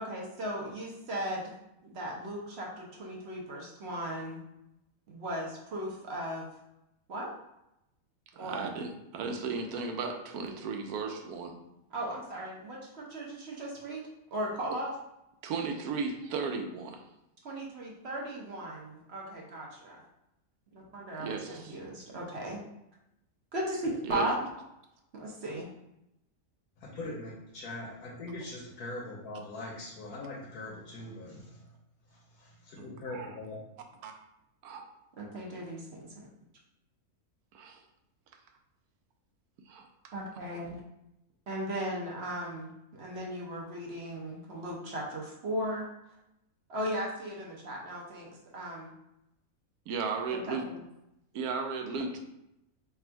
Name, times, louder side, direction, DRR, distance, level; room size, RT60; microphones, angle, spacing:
voice 1, 0.0-1.5 1.8-4.4 5.1-6.5 7.1-7.3 8.4-8.7 11.9-14.0 14.3-14.9 17.4-20.0 20.7-22.6 23.5-24.4 25.1-25.7 35.2-36.3 40.1-40.8 41.5-45.8 46.7-48.9 50.3-50.8, right 1 dB, 55° right, -2 dB, 0.9 m, -37 dB
voice 2, 8.4-11.5 15.4-17.0 21.2-21.8 24.0-24.3 32.8-33.3 34.0-34.1 34.6-34.8 37.5-37.8 39.7-39.9 49.9-50.6 51.3-52.2, right 4 dB, 90° right, 4 dB, 1.1 m, -35 dB
voice 3, 26.8-31.7 32.1-33.6, left 2 dB, 85° left, -3 dB, 1.3 m, -42 dB
3.4 x 2.4 x 4.4 m, 0.85 s
omnidirectional pair, 1.5 m